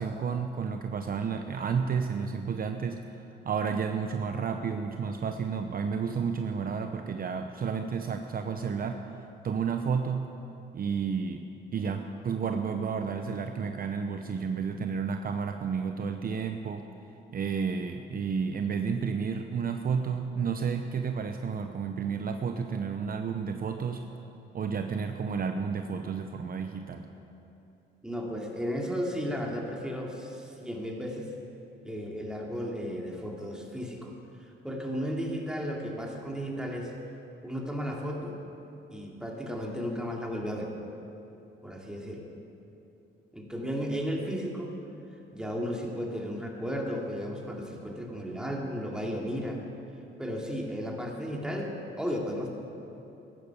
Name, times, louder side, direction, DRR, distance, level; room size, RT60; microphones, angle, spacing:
voice 1, 0.0-9.0 9.4-10.3 10.7-11.4 11.7-16.8 17.3-24.0 24.5-27.1, right 6 dB, 45° right, 6 dB, 0.8 m, -31 dB
voice 2, 28.0-31.3 31.8-34.2 34.4-36.9 37.4-38.4 38.9-40.7 41.6-42.3 43.3-44.7 45.3-49.6 50.2-52.5, equal, 5° right, -1 dB, 2.6 m, -34 dB
15.5 x 11.0 x 7.1 m, 2.9 s
cardioid pair, 90°, 20 cm